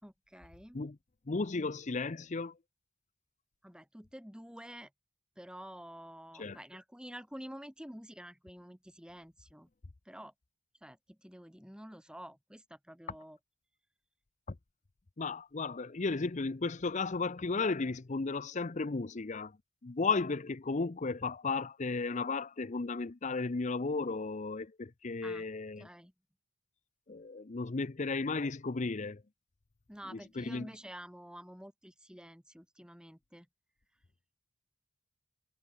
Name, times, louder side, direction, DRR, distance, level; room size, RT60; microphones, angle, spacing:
voice 1, 0.0-0.8 3.6-4.9 5.4-9.7 10.1-10.3 10.8-13.4 25.2-25.4 25.8-26.1 29.9-33.5, equal, 5° right, 5.7 m, -49 dB
voice 2, 1.3-2.6 6.3-6.6 15.2-19.6 19.8-25.9 27.1-29.2 30.0-30.7, left 4 dB, 35° left, 0.6 m, -34 dB
head